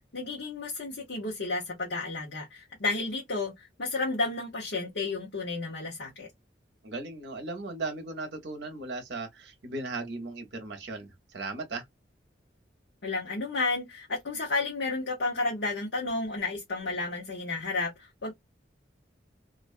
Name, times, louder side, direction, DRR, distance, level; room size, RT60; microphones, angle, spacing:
voice 1, 0.1-6.3 13.0-18.3, left 3 dB, 65° left, 0.8 m, -32 dB
voice 2, 6.8-11.8, right 3 dB, 65° right, 0.7 m, -37 dB
2.4 x 2.2 x 2.4 m
head